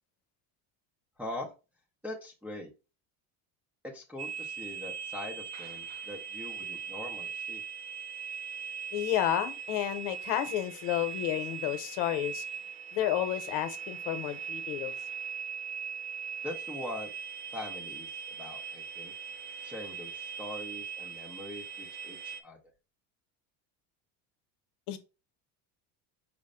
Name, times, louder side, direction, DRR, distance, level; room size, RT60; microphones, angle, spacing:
voice 1, 1.2-1.5 2.0-2.7 3.9-7.6 16.4-17.1 17.5-19.1 19.6-22.6, left 1 dB, 5° right, 0.5 m, -42 dB
sound 1, 4.2-22.4, right 7 dB, 80° right, 0.6 m, -40 dB
voice 2, 8.9-12.4 12.9-14.9 24.9-25.0, left 12 dB, 80° left, 0.9 m, -31 dB
5.0 x 2.1 x 4.8 m
cardioid pair, 175°, 43 cm